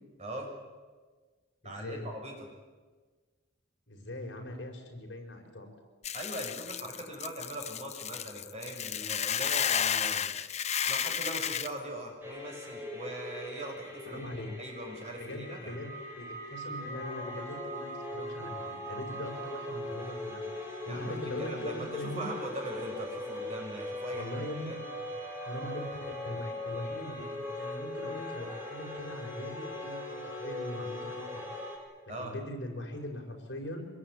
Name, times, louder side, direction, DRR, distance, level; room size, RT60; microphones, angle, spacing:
voice 1, 0.2-0.5 1.6-2.5 6.1-10.3 10.8-14.2 14.6-15.7 20.9-24.3 24.7-24.8 32.1-32.4, right 1 dB, 35° right, 1 dB, 6.5 m, -41 dB
voice 2, 1.6-2.0 3.9-5.7 14.1-14.5 15.2-22.3 24.1-24.7 25.0-25.1 25.4-31.4 32.2-33.9, left 1 dB, 65° left, 2 dB, 5.3 m, -41 dB
Hiss / Boiling, 6.0-11.7, left 8 dB, 35° left, 0.8 m, -32 dB
sound 1, 12.2-31.8, left 1 dB, 10° right, 6.2 m, -40 dB
24.5 x 20.5 x 9.9 m, 1.4 s
head